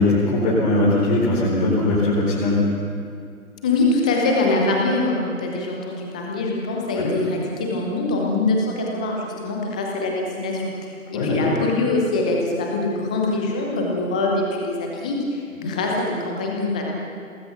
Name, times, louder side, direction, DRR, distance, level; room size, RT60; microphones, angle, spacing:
voice 1, 0.0-2.6 7.0-7.1 11.1-11.5, left 2 dB, 30° left, -7 dB, 4.6 m, -20 dB
voice 2, 3.6-10.7 11.1-16.8, left 2 dB, 5° left, -1 dB, 0.7 m, -23 dB
27.5 x 20.0 x 6.0 m, 2.4 s
figure-of-eight pair, 145°, 43 cm